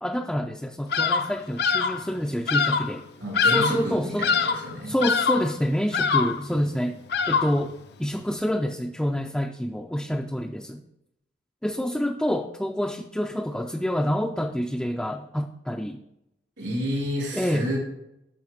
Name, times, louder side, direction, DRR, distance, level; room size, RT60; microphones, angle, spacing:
voice 1, 0.0-3.1 3.4-4.3 4.9-7.0 7.3-7.7 8.0-10.8 11.6-16.0 17.3-17.8, equal, 5° left, 3 dB, 0.3 m, -27 dB
Bird vocalization bird call bird song, 0.9-1.3 1.6-2.0 2.5-2.9 3.3-3.9 4.2-4.7 5.0-5.5 5.9-6.4 7.1-7.6, left 5 dB, 65° left, 0.5 m, -23 dB
voice 2, 3.2-5.0 16.6-17.8, equal, 80° right, -4 dB, 3.5 m, -30 dB
10.5 x 6.3 x 3.1 m, 0.85 s
head